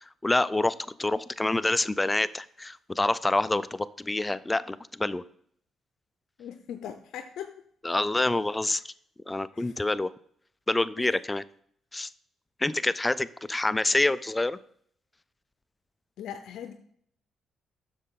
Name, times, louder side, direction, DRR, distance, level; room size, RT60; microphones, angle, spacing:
voice 1, 0.0-5.2 7.8-8.9 9.3-10.1 10.7-11.4 11.9-12.1 12.6-14.6, left 2 dB, 15° left, 16 dB, 0.4 m, -27 dB
voice 2, 6.4-7.5 9.5-9.8 11.0-11.2 16.2-16.7, left 9 dB, 80° left, 8 dB, 0.6 m, -40 dB
7.8 x 6.5 x 3.8 m, 0.64 s
cardioid pair, 90°, 0 cm